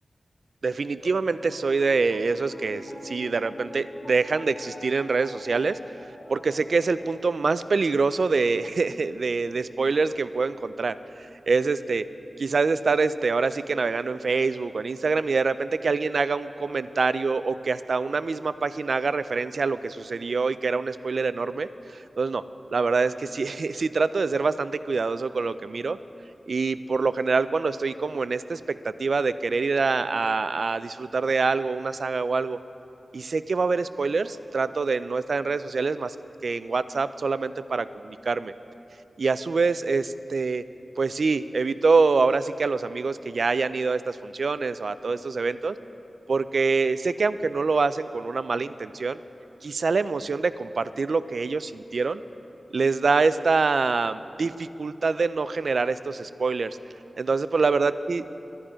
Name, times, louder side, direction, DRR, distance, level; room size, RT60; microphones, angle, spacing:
voice 1, 0.6-5.8 6.3-12.0 12.4-22.4 22.7-26.0 26.5-32.6 33.1-36.2 36.4-38.5 39.2-40.6 41.0-45.8 46.3-49.2 49.6-52.2 52.7-56.8 57.2-58.2, right 4 dB, 65° right, 14 dB, 0.3 m, -25 dB
Piano, 0.9-11.3, left 1 dB, 25° left, 1.5 m, -46 dB
12.0 x 11.0 x 5.0 m, 2.9 s
wide cardioid pair, 115°, 0 cm